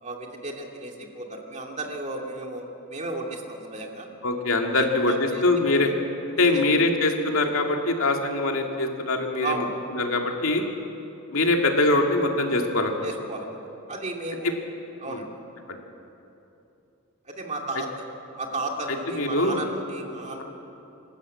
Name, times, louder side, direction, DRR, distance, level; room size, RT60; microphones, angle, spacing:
voice 1, 0.0-4.1 4.7-5.4 5.7-5.8 6.5-6.6 9.4-9.7 13.0-13.6 13.9-14.5 15.0-15.3 17.3-18.0 18.4-20.4, right 2 dB, 35° right, 1 dB, 2.3 m, -34 dB
voice 2, 4.2-5.9 6.4-9.6 9.9-10.6 11.3-13.1 15.1-15.2 15.7-15.8 19.1-19.6, left 2 dB, 85° left, 2 dB, 2.3 m, -23 dB
26.0 x 13.0 x 8.5 m, 2.8 s
head